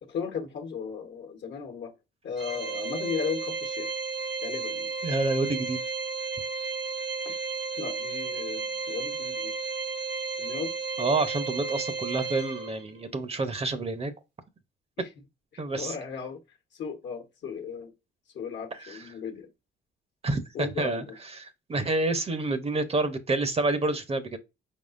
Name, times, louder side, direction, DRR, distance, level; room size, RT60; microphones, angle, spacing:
voice 1, 0.0-1.9 2.2-3.9 4.4-4.9 7.2-7.4 7.8-9.5 10.4-10.8 15.0-15.1 15.5-16.4 16.7-17.9 18.3-19.5 20.5-21.2, left 6 dB, 65° left, 1.0 m, -36 dB
Organ, 2.4-13.0, right 4 dB, 65° right, 1.0 m, -33 dB
voice 2, 5.0-5.8 11.0-14.1 15.6-15.9 18.9-19.0 20.2-21.0 21.4-24.4, right 2 dB, 30° right, 0.7 m, -28 dB
4.8 x 3.6 x 2.5 m
cardioid pair, 90°, 20 cm